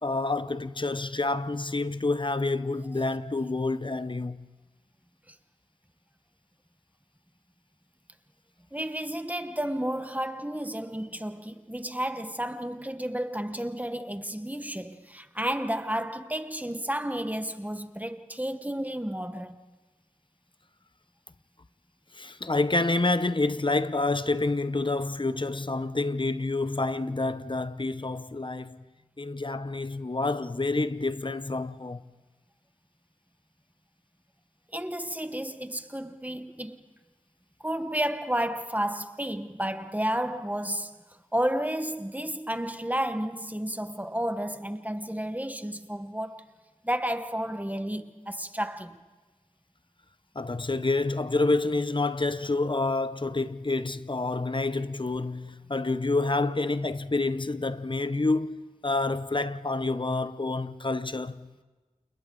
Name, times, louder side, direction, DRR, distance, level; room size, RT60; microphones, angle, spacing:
voice 1, 0.0-4.4 22.1-28.8 29.2-32.0 50.3-58.6 58.8-61.5, left 2 dB, 40° left, 0.8 m, -28 dB
voice 2, 8.7-19.6 34.7-36.8 37.6-41.0 41.3-46.4 46.8-49.0, right 1 dB, 15° right, 1.1 m, -32 dB
29.5 x 29.0 x 3.8 m
wide cardioid pair, 50°, 12 cm